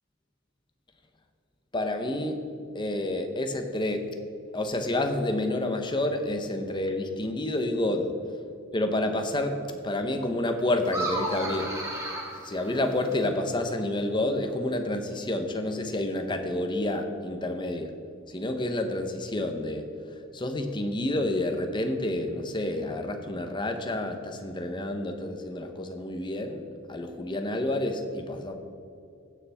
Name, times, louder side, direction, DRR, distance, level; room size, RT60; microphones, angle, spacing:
voice 1, 1.7-2.4 2.7-4.0 4.5-8.1 8.7-11.8 12.4-17.9 18.3-28.6, left 1 dB, 25° left, 5 dB, 0.9 m, -29 dB
sound 1, 10.8-13.3, right 1 dB, 15° right, 2.0 m, -33 dB
16.0 x 7.0 x 3.5 m, 2.6 s
head